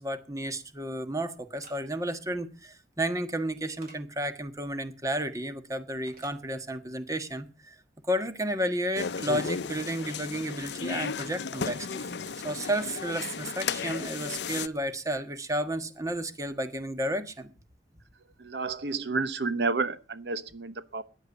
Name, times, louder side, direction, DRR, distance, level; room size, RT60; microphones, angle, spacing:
voice 1, 0.0-7.8 8.1-12.1 12.4-17.5, right 1 dB, 20° right, 9 dB, 1.4 m, -32 dB
sound 1, 1.5-1.8 3.8-4.0 6.1-6.4, right 2 dB, 55° right, 5.7 m, -51 dB
sound 2, 9.0-14.7, left 5 dB, 75° left, 0.6 m, -34 dB
voice 2, 18.4-21.0, right 3 dB, 70° right, 13 dB, 0.9 m, -30 dB
14.0 x 10.0 x 7.0 m, 0.35 s
head